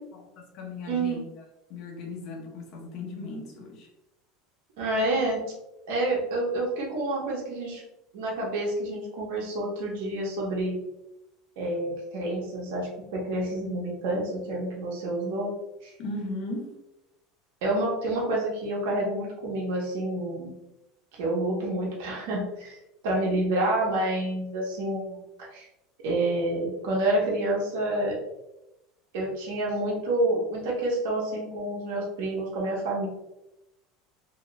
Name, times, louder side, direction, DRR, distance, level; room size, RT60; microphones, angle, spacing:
voice 1, 0.1-1.4 1.7-3.9 16.0-16.8, left 2 dB, 45° left, 0 dB, 0.9 m, -37 dB
voice 2, 0.9-1.2 4.8-5.4 5.9-7.8 8.1-10.8 11.6-15.5 15.8-15.9 17.6-20.5 21.1-22.8 23.0-25.7 26.0-28.2 29.1-33.1, right 1 dB, 80° right, -2 dB, 1.1 m, -28 dB
3.0 x 2.4 x 3.0 m, 0.91 s
supercardioid pair, 155°, 0 cm